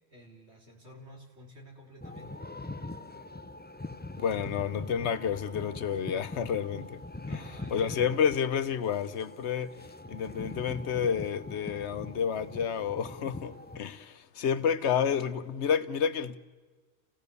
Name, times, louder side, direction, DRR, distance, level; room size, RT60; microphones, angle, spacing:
voice 1, 0.0-2.4 7.3-8.0, equal, 80° right, 3.8 m, -52 dB
sound 1, 2.0-13.8, left 2 dB, 15° left, 0.4 m, -42 dB
voice 2, 4.2-7.0 7.3-9.7 10.1-16.4, left 7 dB, 85° left, 1.1 m, -30 dB
30.0 x 16.5 x 6.8 m
omnidirectional pair, 1.1 m